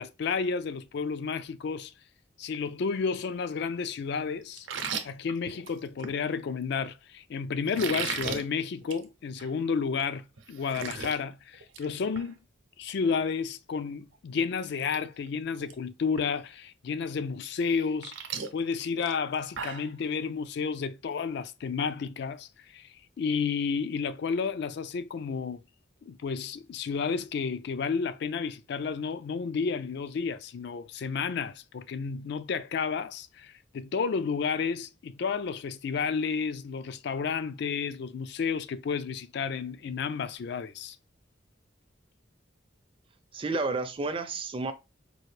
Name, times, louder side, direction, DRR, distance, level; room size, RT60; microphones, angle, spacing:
voice 1, 0.0-1.9 2.4-4.7 5.0-12.4 12.8-18.1 18.5-22.9 23.2-25.6 26.0-41.0, left 5 dB, 60° left, 0.3 m, -31 dB
sound 1, 4.6-6.2 7.7-8.4 8.8-9.0 9.4-9.5 10.0-10.1 10.4-11.2 11.5-11.8 12.1-12.3 14.1-14.2 14.7-15.0 15.3-15.7 16.2-16.3 17.6-19.9, right 6 dB, 85° right, 0.7 m, -36 dB
voice 2, 43.3-44.7, right 3 dB, 25° right, 0.4 m, -31 dB
4.5 x 2.5 x 3.2 m
head